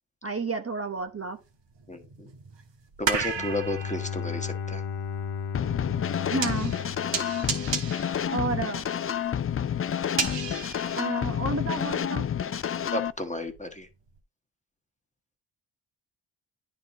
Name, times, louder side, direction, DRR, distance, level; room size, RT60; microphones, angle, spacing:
voice 1, 0.2-1.4 6.3-6.7 8.2-8.8 11.0-12.3, right 3 dB, 30° right, 1.1 m, -31 dB
sound 1, 1.0-1.1 1.7-11.8 12.1-13.8 14.2-14.3, right 5 dB, 60° right, 1.5 m, -34 dB
voice 2, 1.9-2.3 3.0-4.8 7.1-7.4 12.9-13.9, left 1 dB, 15° left, 1.4 m, -33 dB
Bowed string instrument, 3.3-8.0, left 7 dB, 80° left, 1.1 m, -35 dB
sound 2, 5.5-13.1, left 9 dB, 30° left, 0.4 m, -29 dB
9.5 x 4.0 x 4.0 m
cardioid pair, 50°, 49 cm